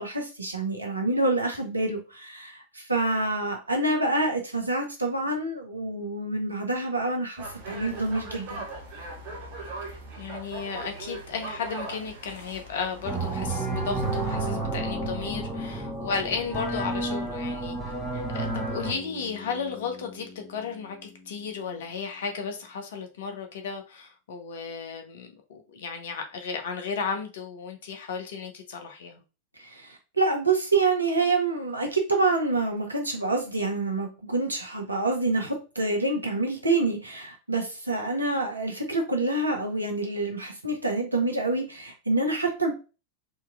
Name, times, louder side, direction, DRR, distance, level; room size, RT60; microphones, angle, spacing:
voice 1, 0.0-8.6 29.6-42.7, right 2 dB, 80° right, 0.9 m, -27 dB
sound 1, 7.4-14.4, right 2 dB, 40° right, 1.3 m, -40 dB
voice 2, 9.9-17.8 18.1-29.2, left 5 dB, 60° left, 0.9 m, -34 dB
sound 2, 13.0-18.9, right 2 dB, ahead, 1.2 m, -30 dB
Bass guitar, 18.9-22.9, left 4 dB, 15° left, 0.8 m, -48 dB
4.2 x 2.9 x 2.4 m
figure-of-eight pair, 90°, 0 cm